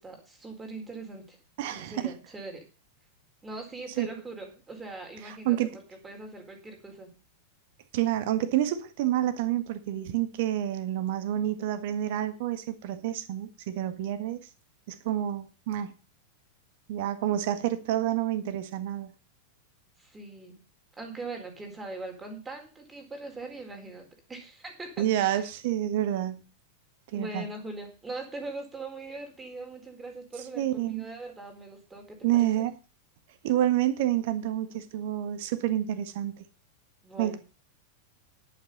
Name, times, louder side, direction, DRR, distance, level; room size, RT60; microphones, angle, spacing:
voice 1, 0.0-1.4 1.7-2.7 3.4-7.2 20.0-20.6 21.0-25.5 27.1-32.7 37.0-37.4, right 2 dB, 15° right, 3 dB, 4.1 m, -41 dB
voice 2, 1.6-2.1 4.0-4.1 5.2-5.7 7.9-14.4 14.9-15.9 16.9-19.1 25.0-26.4 27.1-27.4 30.5-31.1 32.2-32.7 33.4-36.4 37.2-37.4, right 12 dB, 50° right, 11 dB, 1.6 m, -28 dB
10.5 x 9.1 x 5.3 m, 0.33 s
figure-of-eight pair, 90°, 0 cm